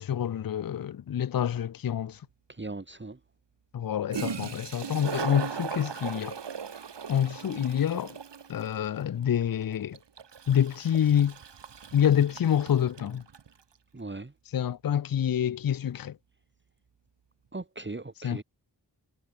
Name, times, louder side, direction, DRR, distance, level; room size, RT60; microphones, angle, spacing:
voice 1, 0.0-2.2 3.7-6.4 7.1-8.2 8.5-10.0 10.5-11.4 11.9-13.2 14.5-16.2 18.2-18.4, left 9 dB, 55° left, 0.6 m, -27 dB
Toilet flush, 2.1-2.2 3.8-3.9 4.1-13.5, right 7 dB, 80° right, 1.6 m, -38 dB
voice 2, 2.5-3.2 13.9-14.3 17.5-18.4, right 2 dB, 25° right, 2.0 m, -38 dB
wide cardioid pair, 55°, 42 cm